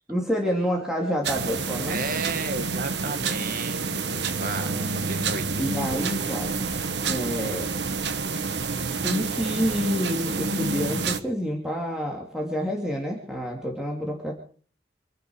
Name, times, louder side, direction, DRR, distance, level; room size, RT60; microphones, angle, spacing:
voice 1, 0.1-2.0 4.6-5.0 5.6-6.5 7.0-7.7 9.0-14.3, equal, 5° right, -1 dB, 2.7 m, -28 dB
sound 1, 1.2-11.2, right 4 dB, 75° right, 1.3 m, -28 dB
voice 2, 1.9-4.7 5.0-5.5, right 3 dB, 55° right, 10 dB, 1.6 m, -33 dB
26.5 x 10.0 x 4.8 m, 0.43 s
head